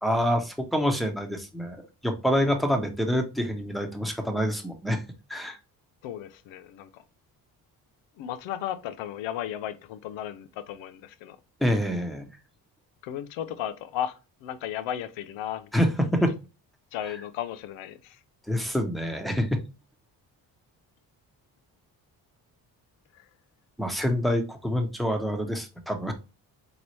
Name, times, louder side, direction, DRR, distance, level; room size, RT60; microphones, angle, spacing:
voice 1, 0.0-5.0 5.3-5.6 11.6-12.3 15.7-16.4 17.1-17.2 18.5-19.6 23.8-26.1, equal, ahead, 1.1 m, -26 dB
voice 2, 6.0-7.0 8.2-11.4 13.0-15.8 16.9-18.2 23.1-23.3, left 10 dB, 75° left, 0.7 m, -35 dB
3.9 x 3.0 x 3.1 m
hypercardioid pair, 50°, 47 cm